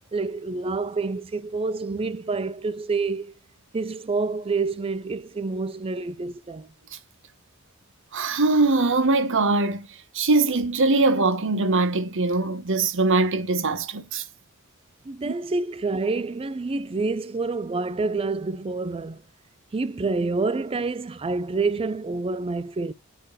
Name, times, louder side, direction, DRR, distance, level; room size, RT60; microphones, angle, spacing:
voice 1, 0.1-3.3 3.7-6.7 15.0-19.2 19.7-22.9, right 3 dB, 25° right, 0.4 m, -28 dB
voice 2, 8.1-9.9 10.1-14.2 15.2-15.3, right 3 dB, 65° right, 1.0 m, -22 dB
7.8 x 4.9 x 4.0 m
head